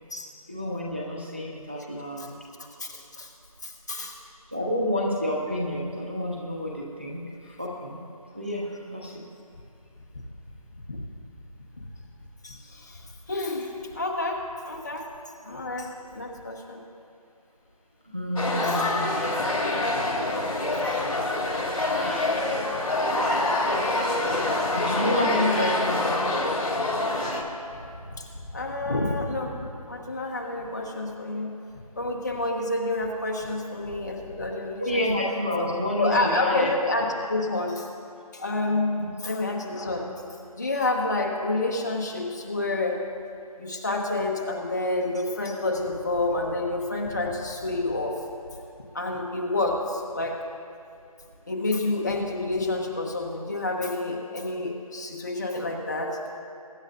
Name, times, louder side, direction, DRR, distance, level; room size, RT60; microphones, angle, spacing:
voice 1, 0.5-2.3 4.5-8.0 8.3-9.2 18.0-19.2 21.9-22.4 24.7-26.3 34.8-36.7 39.0-39.1, left 1 dB, 20° right, -3 dB, 0.6 m, -29 dB
voice 2, 2.6-3.3 3.6-4.2 10.9-11.0 12.4-15.1 15.4-16.8 28.1-28.3 28.5-31.5 32.0-35.0 36.0-37.9 38.3-39.0 39.2-40.2 40.6-43.0 43.6-48.2 48.9-50.4 51.5-56.2, left 2 dB, 30° left, 0 dB, 1.1 m, -29 dB
sound 1, 18.4-27.4, left 2 dB, 60° left, 2.7 m, -26 dB
22.5 x 10.5 x 2.5 m, 2.5 s
figure-of-eight pair, 175°, 19 cm